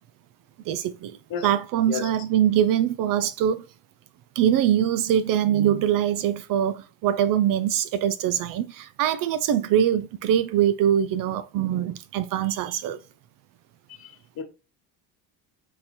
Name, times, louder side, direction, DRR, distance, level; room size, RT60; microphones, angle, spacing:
voice 1, 0.7-1.2 1.4-3.6 4.4-13.0, right 10 dB, 50° right, 0.5 m, -23 dB
voice 2, 13.9-14.4, left 7 dB, 50° left, 1.4 m, -33 dB
3.9 x 2.9 x 4.1 m
cardioid pair, 120°, 43 cm